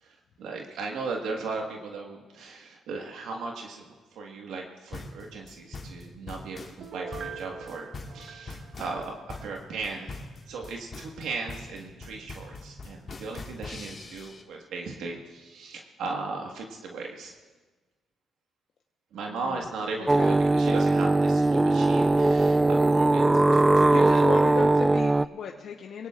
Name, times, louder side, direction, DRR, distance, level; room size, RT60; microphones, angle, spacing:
voice 1, 0.0-3.8 4.1-7.9 8.1-9.2 9.4-10.1 10.5-17.3 19.1-23.2 23.7-24.2, right 4 dB, 80° right, 0 dB, 1.5 m, -37 dB
sound 1, 4.9-14.4, left 3 dB, 40° left, 1.7 m, -42 dB
Piano, 6.8-9.5 9.9-10.0, right 5 dB, 55° right, 1.0 m, -42 dB
voice 2, 19.3-19.7 20.0-20.4 23.5-23.6 23.9-26.1, left 6 dB, 65° left, 2 dB, 0.9 m, -36 dB
sound 2, 20.1-25.3, right 2 dB, 15° right, 0.3 m, -20 dB
23.5 x 17.5 x 2.4 m, 1.3 s
cardioid pair, 90°, 0 cm